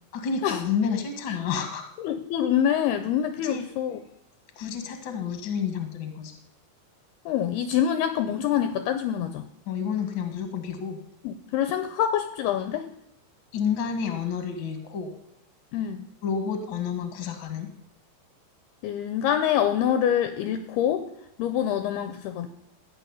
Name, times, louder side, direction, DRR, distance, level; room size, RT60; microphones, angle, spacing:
voice 1, 0.1-1.8 3.4-3.7 4.6-6.3 9.7-11.0 13.5-15.1 16.2-17.7, left 6 dB, 40° left, 6 dB, 1.8 m, -30 dB
voice 2, 2.0-4.0 7.3-9.4 11.2-12.9 15.7-16.1 18.8-21.1 21.4-22.5, left 9 dB, 75° left, 10 dB, 2.5 m, -25 dB
16.5 x 6.6 x 9.8 m, 0.80 s
omnidirectional pair, 5.2 m